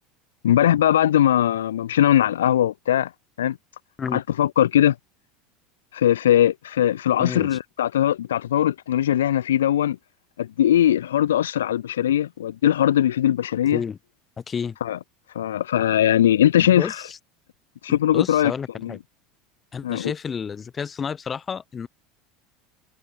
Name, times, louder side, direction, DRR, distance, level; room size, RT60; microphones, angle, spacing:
voice 1, 0.4-3.1 3.4-3.6 4.1-4.9 5.9-10.0 10.4-13.8 14.8-15.0 15.3-17.0 17.8-18.5 18.8-19.0 19.8-20.1, left 11 dB, 90° left, 0.7 m, -20 dB
voice 2, 7.2-7.6 13.7-14.0 14.4-14.8 16.6-17.2 17.9-19.0 19.7-21.9, left 6 dB, 30° left, 2.4 m, -31 dB
hypercardioid pair, 90°, 0 cm